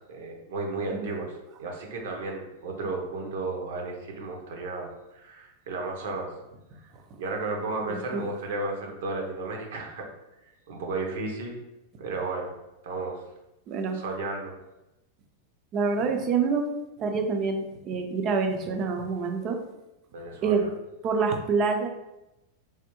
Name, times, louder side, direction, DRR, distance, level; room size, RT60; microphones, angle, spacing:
voice 1, 0.1-6.3 7.2-10.1 10.7-11.6 12.0-12.5 12.8-13.2 13.9-14.5 20.1-20.7, right 3 dB, 75° right, 1 dB, 0.8 m, -33 dB
voice 2, 7.9-8.2 13.7-14.0 15.7-16.7 17.0-19.6 20.4-20.6 21.0-21.9, right 5 dB, 35° right, 5 dB, 0.5 m, -26 dB
3.3 x 2.0 x 3.0 m, 0.93 s
supercardioid pair, 130°, 0 cm